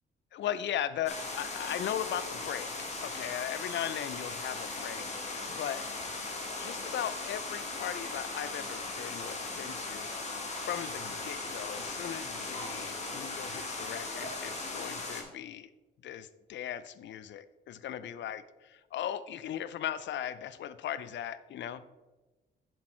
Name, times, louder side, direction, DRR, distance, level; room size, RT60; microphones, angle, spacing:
voice 1, 0.3-2.7 3.0-5.9 6.6-10.1 10.6-15.7 16.0-18.4 18.9-21.8, left 10 dB, 65° left, 15 dB, 0.6 m, -38 dB
sound 1, 1.1-15.2, left 3 dB, 35° left, 2.1 m, -38 dB
8.2 x 6.3 x 4.4 m, 1.2 s
cardioid pair, 90°, 20 cm